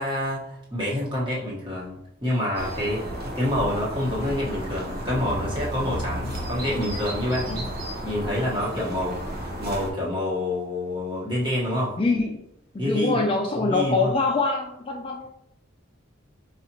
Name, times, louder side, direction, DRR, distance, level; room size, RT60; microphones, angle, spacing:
voice 1, 0.0-3.0 3.3-7.7 8.0-9.2 9.6-11.9 12.8-13.2 13.5-14.1, left 1 dB, 25° right, -6 dB, 1.2 m, -27 dB
sound 1, 2.5-9.9, right 1 dB, 45° right, 0.8 m, -33 dB
voice 2, 12.0-12.4 12.7-15.3, left 3 dB, 25° left, 1 dB, 0.3 m, -24 dB
4.9 x 2.4 x 2.9 m, 0.75 s
head